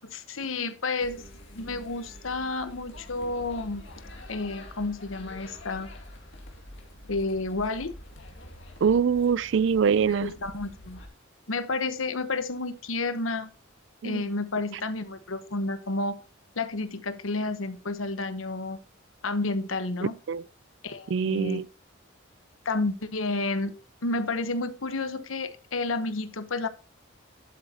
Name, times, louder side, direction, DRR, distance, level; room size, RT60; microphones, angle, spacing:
voice 1, 0.0-1.3 1.5-3.8 4.3-5.9 7.1-7.9 10.2-11.0 11.5-13.5 14.0-16.2 16.6-18.8 19.2-20.2 20.8-21.6 22.6-23.7 24.0-26.7, left 3 dB, 80° left, 1.1 m, -30 dB
sound 1, 1.0-11.1, left 1 dB, 60° left, 2.4 m, -46 dB
voice 2, 8.8-10.3 14.0-14.2 20.3-20.4 21.1-21.7, right 6 dB, 60° right, 0.3 m, -23 dB
11.5 x 8.0 x 2.9 m
head